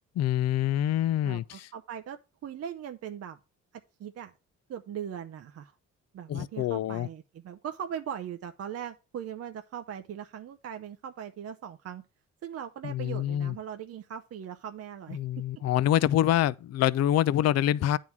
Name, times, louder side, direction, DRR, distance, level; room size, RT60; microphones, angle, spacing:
voice 1, 0.2-1.7 6.3-7.1 12.8-13.6 15.1-18.0, left 12 dB, 55° left, 0.5 m, -26 dB
voice 2, 1.2-3.4 4.0-4.3 4.7-5.7 6.1-12.0 12.4-15.2, right 9 dB, 55° right, 0.7 m, -39 dB
9.4 x 3.8 x 5.9 m
cardioid pair, 90°, 30 cm